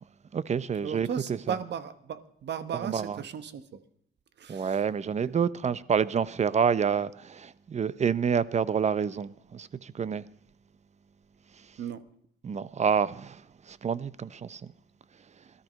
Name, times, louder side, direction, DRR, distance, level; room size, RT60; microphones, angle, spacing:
voice 1, 0.3-1.6 2.7-3.2 4.5-10.3 12.4-14.7, right 7 dB, 35° right, 0.7 m, -28 dB
voice 2, 0.8-3.8 4.4-4.8 5.2-5.3 11.8-12.0, right 8 dB, 60° right, 1.3 m, -36 dB
17.0 x 13.0 x 5.3 m
cardioid pair, 90°, 20 cm